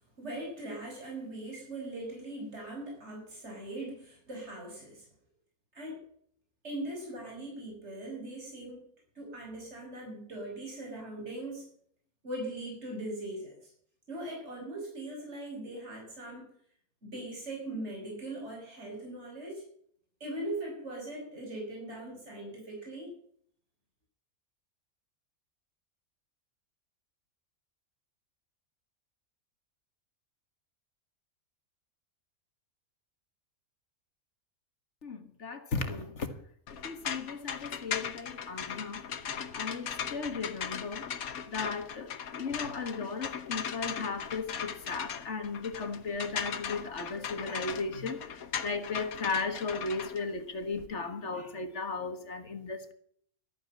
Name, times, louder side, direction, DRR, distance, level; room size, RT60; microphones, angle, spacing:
voice 1, 0.2-5.1 5.7-6.0 6.6-8.8 9.1-11.7 12.2-13.7 14.1-16.5 17.0-19.6 20.2-23.1, right 1 dB, 50° right, 6.1 m, -40 dB
voice 2, 35.0-36.3 36.7-39.0 39.5-41.1 41.5-52.9, left 4 dB, 55° left, 1.9 m, -36 dB
sound 1, 36.7-50.9, left 8 dB, 85° left, 1.5 m, -38 dB
13.5 x 9.1 x 7.4 m
omnidirectional pair, 1.5 m